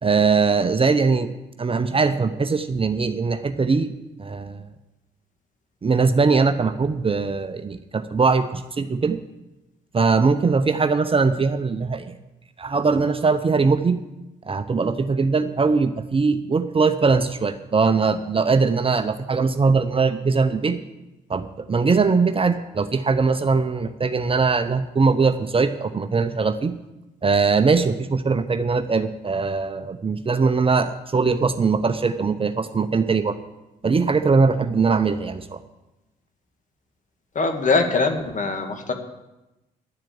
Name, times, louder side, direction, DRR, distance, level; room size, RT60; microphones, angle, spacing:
voice 1, 0.0-1.3 1.6-3.9 4.2-4.6 5.8-9.2 9.9-12.1 12.6-14.0 14.5-20.8 21.3-26.8 27.2-33.4 33.8-35.6, right 4 dB, 30° right, 10 dB, 0.8 m, -21 dB
voice 2, 37.4-38.9, left 3 dB, 40° left, 6 dB, 1.9 m, -22 dB
10.5 x 7.7 x 8.7 m, 1.0 s
hypercardioid pair, 45°, 20 cm